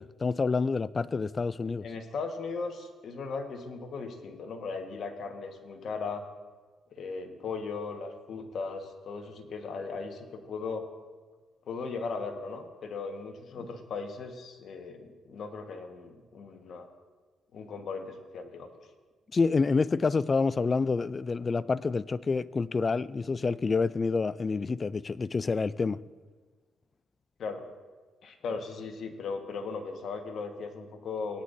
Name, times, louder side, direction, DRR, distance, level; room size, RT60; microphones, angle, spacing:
voice 1, 0.0-1.9 19.3-26.0, left 4 dB, 30° left, 18 dB, 0.3 m, -28 dB
voice 2, 1.8-6.2 6.9-10.9 11.7-16.9 17.5-18.7 27.4-27.6 28.2-31.4, left 4 dB, 60° left, 4 dB, 1.4 m, -37 dB
17.5 x 9.9 x 2.7 m, 1.4 s
cardioid pair, 90°, 0 cm